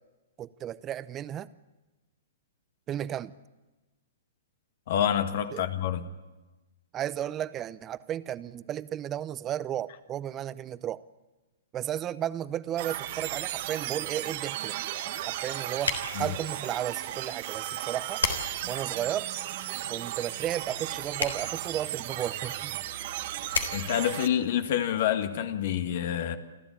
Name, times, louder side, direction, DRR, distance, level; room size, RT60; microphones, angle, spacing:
voice 1, 0.4-1.5 2.9-3.3 5.5-5.6 6.9-11.0 11.7-14.8 15.0-18.2 18.7-19.3 19.9-22.8, right 11 dB, 25° right, 16 dB, 0.8 m, -34 dB
voice 2, 4.9-6.1 16.2-16.4 23.7-26.4, left 10 dB, 55° left, 7 dB, 2.0 m, -27 dB
sound 1, 12.8-24.3, right 13 dB, 50° right, 1.3 m, -35 dB
sound 2, 15.1-25.0, left 4 dB, 85° left, 3.6 m, -38 dB
29.5 x 12.5 x 8.9 m, 1.1 s
hypercardioid pair, 120°, 0 cm